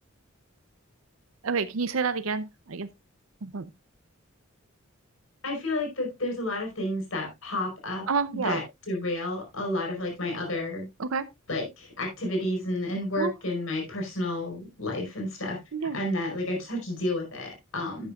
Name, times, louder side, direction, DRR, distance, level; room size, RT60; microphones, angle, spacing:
voice 1, 1.4-2.9 3.4-3.7 8.1-8.6 11.0-11.3 13.2-13.3 15.7-16.0, right 5 dB, 90° right, 0.6 m, -29 dB
voice 2, 5.4-8.0 8.3-10.9 11.5-18.1, left 1 dB, 80° left, 4.6 m, -31 dB
12.0 x 8.5 x 2.4 m
head